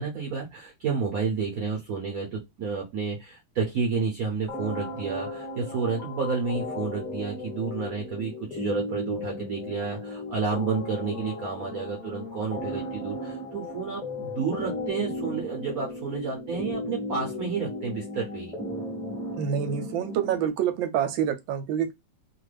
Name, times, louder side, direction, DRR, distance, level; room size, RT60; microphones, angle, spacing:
voice 1, 0.0-18.6, right 5 dB, 60° right, 1.0 m, -30 dB
sound 1, 4.5-20.5, left 2 dB, 5° left, 0.7 m, -36 dB
voice 2, 19.4-21.9, right 9 dB, 80° right, 1.3 m, -27 dB
3.0 x 2.4 x 3.2 m
omnidirectional pair, 2.1 m